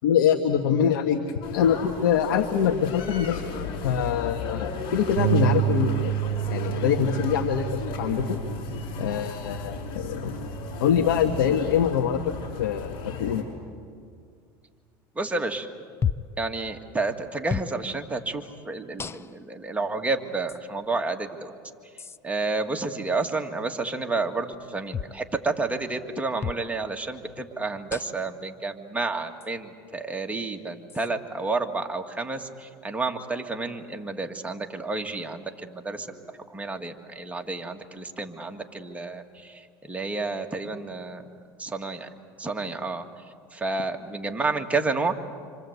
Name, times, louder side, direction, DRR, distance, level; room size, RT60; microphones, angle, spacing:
voice 1, 0.0-3.4 3.8-6.1 6.5-8.4 9.0-10.4 10.8-13.4, left 8 dB, 80° left, 4 dB, 1.5 m, -24 dB
sound 1, 1.4-13.4, left 6 dB, 50° left, 6.8 m, -36 dB
Bass guitar, 5.2-11.4, right 14 dB, 80° right, 0.6 m, -29 dB
voice 2, 15.2-15.7 16.4-21.5 22.2-41.3 41.6-42.1 42.4-43.0 43.5-45.1, right 3 dB, 10° right, 3 dB, 2.2 m, -30 dB
sound 2, 16.0-16.4 17.5-17.7 19.0-19.5 20.5-20.6 22.0-22.2 24.9-25.2 26.4-26.7 27.9-28.3 29.4-29.5 30.9-31.1, left 7 dB, 20° left, 0.7 m, -31 dB
27.0 x 26.0 x 8.3 m, 2.2 s
supercardioid pair, 95°, 12 cm